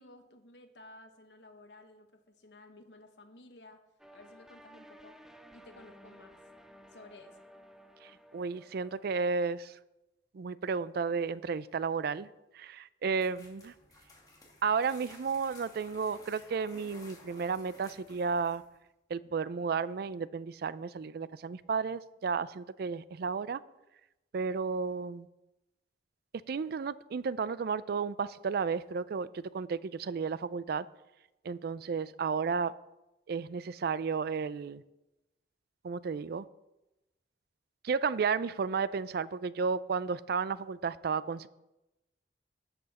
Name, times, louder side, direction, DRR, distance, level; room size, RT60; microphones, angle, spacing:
voice 1, 0.0-3.8 4.1-5.2 5.5-6.4 6.9-7.4, left 2 dB, 70° left, 6 dB, 1.2 m, -55 dB
sound 1, 4.0-9.1, equal, 5° right, 0.5 m, -55 dB
voice 2, 8.0-9.7 10.3-12.3 12.5-13.7 14.6-18.6 19.1-23.6 24.3-25.3 26.5-30.9 31.4-32.7 33.3-34.8 35.8-36.5 37.8-41.5, right 5 dB, 60° right, 17 dB, 0.4 m, -33 dB
sound 2, 13.2-18.8, left 2 dB, 20° left, 2.4 m, -56 dB
12.5 x 7.8 x 4.2 m, 0.96 s
head